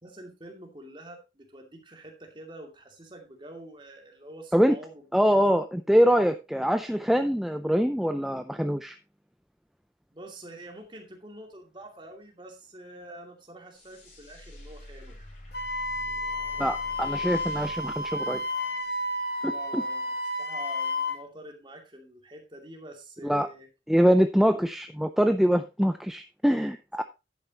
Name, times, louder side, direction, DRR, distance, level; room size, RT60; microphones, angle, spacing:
voice 1, 0.0-5.5 10.1-15.3 19.4-20.1 20.4-23.7, right 1 dB, 25° right, 2 dB, 2.4 m, -46 dB
voice 2, 5.1-9.0 16.6-18.4 19.4-19.8 23.2-23.5 23.9-27.0, equal, ahead, 8 dB, 0.4 m, -24 dB
sound 1, 13.7-19.1, left 1 dB, 40° left, 4.6 m, -47 dB
Wind instrument woodwind instrument, 15.5-21.2, left 2 dB, 65° left, 1.5 m, -31 dB
10.5 x 9.0 x 2.9 m, 0.26 s
head